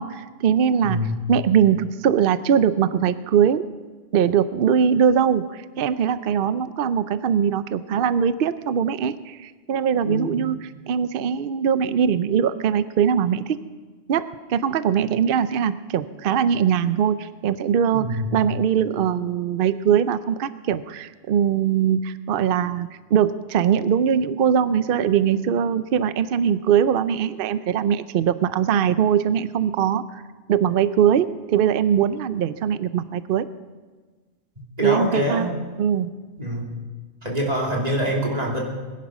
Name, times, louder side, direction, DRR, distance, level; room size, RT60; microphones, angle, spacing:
voice 1, 0.0-1.0 1.3-3.6 4.1-13.6 14.1-30.2 30.5-33.5 34.8-35.5 35.8-36.1, right 8 dB, 60° right, 14 dB, 0.7 m, -21 dB
voice 2, 0.8-1.2 10.0-10.3 17.9-18.3 34.8-35.5 36.4-36.7 37.2-38.6, equal, 35° right, -2 dB, 3.1 m, -25 dB
21.0 x 10.5 x 6.0 m, 1.4 s
omnidirectional pair, 1.2 m